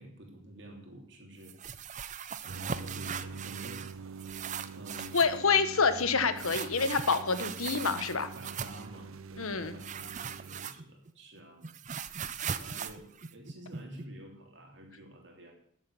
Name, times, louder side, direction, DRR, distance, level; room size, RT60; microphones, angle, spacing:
voice 1, 0.0-1.6 2.4-4.1 4.7-5.2 8.3-11.7 12.4-15.5, right 1 dB, 55° right, 2 dB, 3.2 m, -49 dB
sound 1, 1.4-3.9 4.2-5.4 6.4-8.9 9.8-11.1 11.4-14.0, right 7 dB, 35° right, 0.5 m, -39 dB
sound 2, 2.5-10.7, right 4 dB, 80° right, 0.6 m, -45 dB
voice 2, 5.1-8.3 9.4-9.7, left 5 dB, 90° left, 11 dB, 1.2 m, -27 dB
13.0 x 7.6 x 6.9 m, 0.67 s
head